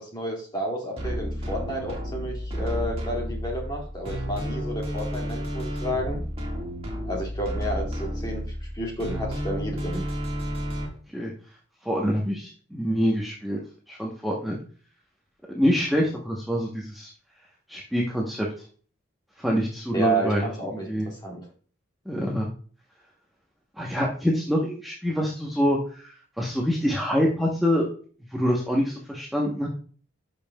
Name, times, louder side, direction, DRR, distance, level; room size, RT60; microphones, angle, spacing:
voice 1, 0.0-6.2 7.1-10.1 19.9-21.5, right 1 dB, 20° left, -1 dB, 2.0 m, -31 dB
sound 1, 1.0-10.9, equal, 30° right, 1.6 m, -31 dB
voice 2, 11.8-13.6 13.9-14.6 15.5-17.1 17.7-18.5 19.4-20.4 20.9-21.1 22.1-22.5 23.8-27.9 28.3-29.7, equal, ahead, -4 dB, 0.8 m, -25 dB
12.0 x 5.4 x 2.2 m, 0.43 s
head